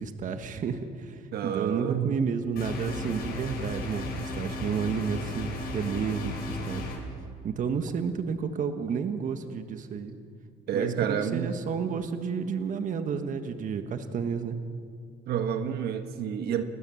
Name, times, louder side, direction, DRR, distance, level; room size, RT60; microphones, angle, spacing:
voice 1, 0.0-6.9 7.4-10.2 10.7-14.6, right 6 dB, 50° right, 8 dB, 1.4 m, -31 dB
voice 2, 1.3-2.2 3.9-4.1 10.7-11.5 15.3-16.6, right 8 dB, 70° right, 7 dB, 1.5 m, -29 dB
sound 1, 2.6-7.0, left 2 dB, 65° left, 7.3 m, -35 dB
30.0 x 13.0 x 7.7 m, 2.2 s
cardioid pair, 110°, 17 cm